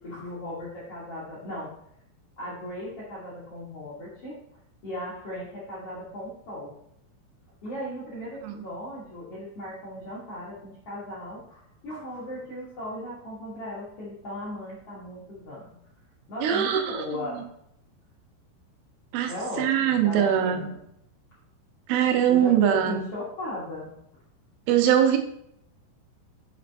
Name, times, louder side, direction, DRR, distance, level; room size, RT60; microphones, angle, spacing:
voice 1, 0.0-1.7 2.4-4.4 4.8-6.7 7.6-15.8 16.3-17.4 19.3-20.8 22.3-23.9, left 1 dB, 65° left, -7 dB, 1.5 m, -37 dB
voice 2, 16.4-17.1 17.3-17.4 19.1-19.3 19.6-20.7 21.9-23.1 24.7-25.2, right 9 dB, 85° right, 5 dB, 3.4 m, -22 dB
7.2 x 4.9 x 3.5 m, 0.73 s
omnidirectional pair, 5.6 m